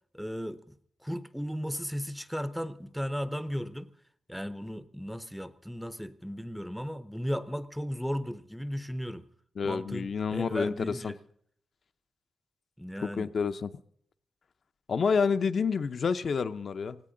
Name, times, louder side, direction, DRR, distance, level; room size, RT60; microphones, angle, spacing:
voice 1, 0.1-0.7 1.0-3.9 4.3-9.3 9.6-11.2 12.8-13.3, equal, ahead, 0.6 m, -35 dB
voice 2, 9.6-11.1 13.2-13.7 14.9-17.0, left 5 dB, 45° left, 0.6 m, -28 dB
18.5 x 17.0 x 3.8 m
wide cardioid pair, 165°, 0 cm